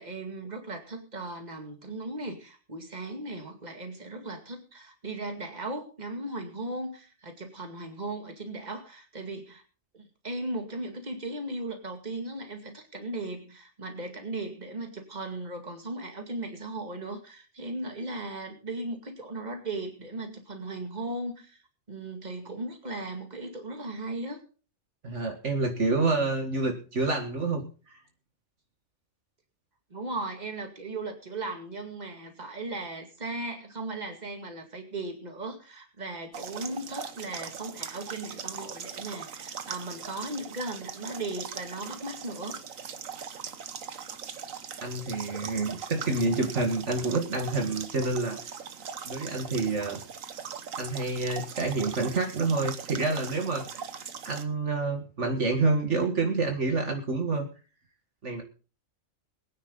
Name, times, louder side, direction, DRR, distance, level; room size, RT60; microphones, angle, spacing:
voice 1, 0.0-9.6 9.9-21.6 21.9-24.4 29.9-42.6, right 2 dB, 30° right, 4 dB, 2.4 m, -37 dB
voice 2, 25.0-28.0 44.8-48.4 49.1-50.0 50.8-53.9 54.3-57.5 58.2-58.4, right 3 dB, 60° right, 4 dB, 2.1 m, -28 dB
sound 1, 36.3-54.4, right 7 dB, 85° right, 1.5 m, -40 dB
22.0 x 9.8 x 3.9 m, 0.36 s
omnidirectional pair, 1.4 m